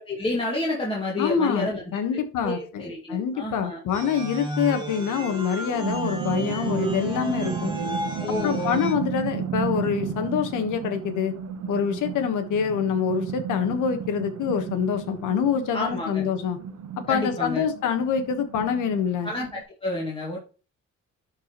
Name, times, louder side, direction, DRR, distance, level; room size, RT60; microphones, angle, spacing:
voice 1, 0.1-1.8 2.1-3.8 8.2-8.9 15.7-16.2 17.1-17.7 19.2-20.4, left 2 dB, 15° left, -4 dB, 2.2 m, -30 dB
voice 2, 1.2-7.8 8.4-11.4 11.7-16.6 17.1-19.3, left 7 dB, 80° left, 8 dB, 1.4 m, -26 dB
sound 1, 3.9-8.9, right 1 dB, 15° right, 2.0 m, -33 dB
sound 2, 5.3-19.6, right 7 dB, 65° right, 1.0 m, -34 dB
11.5 x 4.6 x 3.1 m, 0.35 s
cardioid pair, 90°, 30 cm